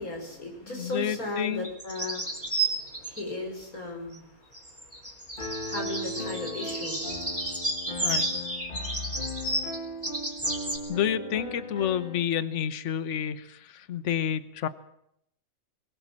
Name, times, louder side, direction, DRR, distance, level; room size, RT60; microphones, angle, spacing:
voice 1, 0.0-7.1, left 2 dB, 80° left, 1 dB, 6.1 m, -37 dB
voice 2, 0.7-1.7 8.0-8.3 10.9-14.7, left 9 dB, 60° left, 13 dB, 1.3 m, -29 dB
sound 1, 1.6-3.2 4.5-10.8, right 2 dB, 10° right, 3.6 m, -31 dB
Piano, 5.4-12.2, left 1 dB, 35° left, 2.4 m, -37 dB
21.5 x 20.0 x 7.5 m, 0.74 s
omnidirectional pair, 1.5 m